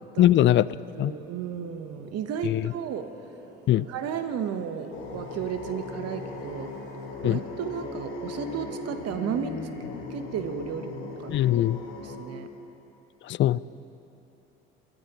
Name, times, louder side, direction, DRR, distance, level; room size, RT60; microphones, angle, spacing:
voice 1, 0.2-0.7 1.0-1.1 2.4-2.7 3.7-3.9 7.2-7.4 11.3-11.8 13.3-13.6, left 13 dB, 40° left, 19 dB, 0.4 m, -21 dB
sound 1, 0.6-8.0, right 2 dB, 35° right, 4.1 m, -51 dB
voice 2, 0.9-3.1 3.9-6.7 7.2-9.6 10.1-11.3 12.0-12.5, right 8 dB, 55° right, 9 dB, 1.1 m, -33 dB
sound 2, 4.9-12.2, left 3 dB, 70° left, 2.1 m, -38 dB
23.5 x 14.5 x 3.0 m, 3.0 s
hypercardioid pair, 65°, 29 cm